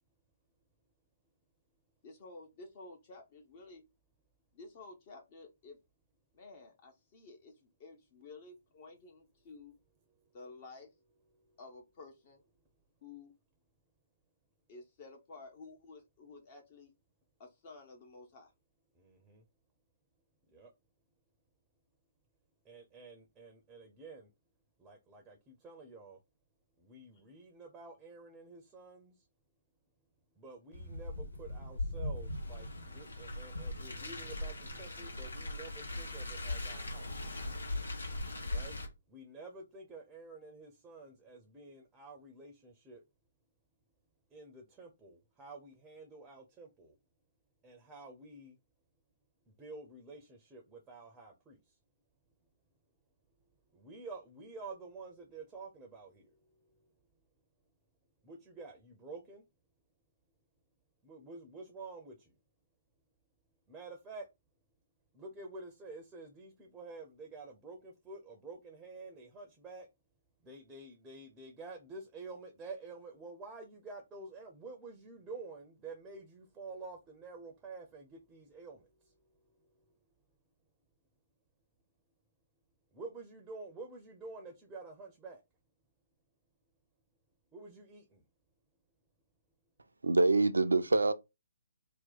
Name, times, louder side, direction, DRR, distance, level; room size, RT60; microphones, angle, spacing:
voice 1, 2.0-3.8 4.5-5.8 6.3-9.7 10.3-10.9 11.6-12.4 13.0-13.3 14.7-16.9 17.4-18.5, left 3 dB, 35° left, 0.7 m, -52 dB
voice 2, 19.0-19.4 20.5-20.7 22.7-24.3 24.8-26.2 26.8-29.1 30.4-37.1 38.5-38.8 39.1-43.0 44.3-46.9 47.6-48.6 49.6-51.6 53.7-56.3 58.2-59.4 61.0-62.3 63.7-64.3 65.1-69.9 70.4-78.9 82.9-85.4 87.5-88.2, right 3 dB, 10° right, 0.5 m, -49 dB
Car, 30.7-38.9, left 1 dB, 80° left, 1.1 m, -39 dB
voice 3, 90.0-91.1, right 3 dB, 75° right, 0.4 m, -25 dB
2.7 x 2.1 x 3.9 m
figure-of-eight pair, 135°, 0 cm